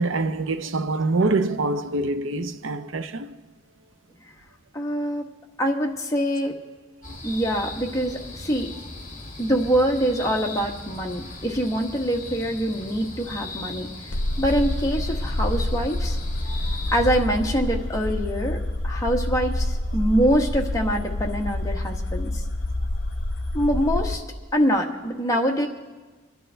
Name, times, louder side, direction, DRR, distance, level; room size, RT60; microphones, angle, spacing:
voice 1, 0.0-3.4 7.0-7.2 16.5-16.8 25.3-25.4, right 2 dB, 80° right, 0.7 m, -25 dB
voice 2, 4.7-5.3 5.6-6.6 7.2-8.7 9.4-13.9 14.4-16.2 16.9-22.4 23.5-24.2 24.5-25.7, equal, 15° left, 1.1 m, -24 dB
sound 1, 7.0-17.2, left 2 dB, 40° left, 1.9 m, -38 dB
sound 2, 14.1-24.2, left 1 dB, 60° left, 0.9 m, -27 dB
24.0 x 11.0 x 3.4 m
head